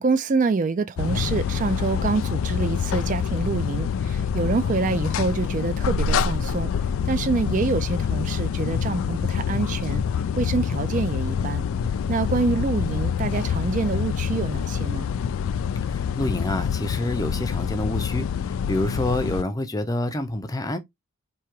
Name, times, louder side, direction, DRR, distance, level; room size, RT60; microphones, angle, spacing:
voice 1, 0.0-6.7 7.1-10.0 10.4-11.6 12.1-15.1, right 4 dB, 35° right, 0.3 m, -26 dB
sound 1, 1.0-19.4, left 7 dB, 75° left, 0.3 m, -26 dB
voice 2, 15.8-20.8, left 1 dB, 15° left, 0.5 m, -27 dB
4.6 x 2.8 x 3.0 m
head